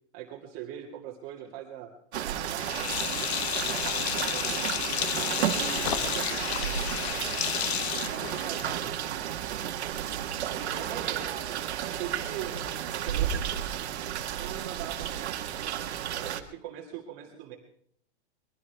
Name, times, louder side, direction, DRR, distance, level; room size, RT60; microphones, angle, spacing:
voice 1, 0.1-1.9 2.2-2.7 3.6-4.7 5.4-6.4 8.0-9.3 10.4-13.4 14.4-15.8 16.1-17.5, right 10 dB, 30° right, -1 dB, 2.1 m, -42 dB
sound 1, 2.1-16.4, right 10 dB, 70° right, 1.7 m, -32 dB
Sink (filling or washing), 2.5-8.9, left 11 dB, 65° left, 0.9 m, -32 dB
sound 2, 3.1-8.2, left 9 dB, 45° left, 1.2 m, -43 dB
voice 2, 5.1-7.4 10.6-11.5, right 5 dB, 10° right, -3 dB, 4.7 m, -45 dB
22.0 x 17.0 x 3.4 m, 0.64 s
hypercardioid pair, 160°, 34 cm